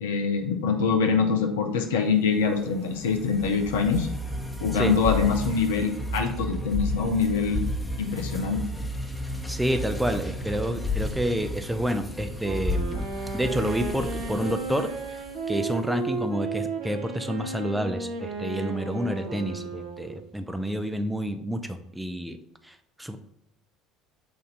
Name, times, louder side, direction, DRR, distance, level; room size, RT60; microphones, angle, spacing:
voice 1, 0.0-4.1 4.6-7.6 8.0-8.6, left 5 dB, 70° left, 5 dB, 0.6 m, -24 dB
sound 1, 2.3-15.7, left 1 dB, 10° left, 1.0 m, -33 dB
voice 2, 9.5-13.1 13.3-14.9 15.5-22.4 22.7-23.2, equal, 5° right, 8 dB, 0.7 m, -29 dB
Wind instrument woodwind instrument, 12.4-20.3, right 4 dB, 65° right, 0.9 m, -34 dB
6.6 x 2.7 x 5.3 m, 0.80 s
figure-of-eight pair, 60°, 0 cm